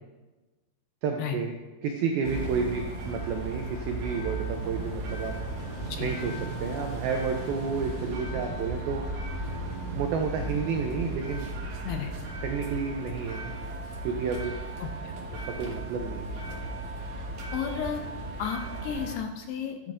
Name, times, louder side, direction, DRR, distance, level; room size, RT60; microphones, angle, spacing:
voice 1, 1.0-1.6 1.8-5.4 6.0-6.3 6.6-9.0 9.9-11.5 12.4-13.5 14.0-14.5 15.3-16.4, right 5 dB, 90° right, 3 dB, 2.1 m, -31 dB
sound 1, 2.2-19.2, right 2 dB, 70° right, 1.5 m, -35 dB
sound 2, 5.6-8.7, right 1 dB, 50° right, 3.4 m, -50 dB
voice 2, 17.5-18.1 18.4-19.9, left 8 dB, 85° left, 4 dB, 2.5 m, -33 dB
11.5 x 10.0 x 2.5 m, 1.2 s
omnidirectional pair, 5.1 m